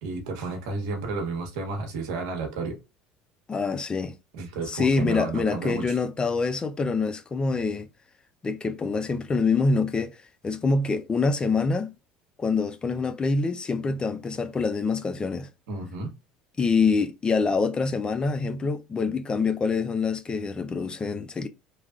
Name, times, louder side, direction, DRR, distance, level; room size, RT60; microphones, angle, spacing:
voice 1, 0.0-2.8 4.3-6.0 15.7-16.1, right 3 dB, 80° right, 1.0 m, -32 dB
voice 2, 3.5-4.2 4.7-7.9 8.4-10.2 10.4-11.9 12.4-15.5 16.6-21.5, left 4 dB, 25° left, 0.5 m, -25 dB
3.1 x 2.3 x 2.4 m
hypercardioid pair, 80°, 3 cm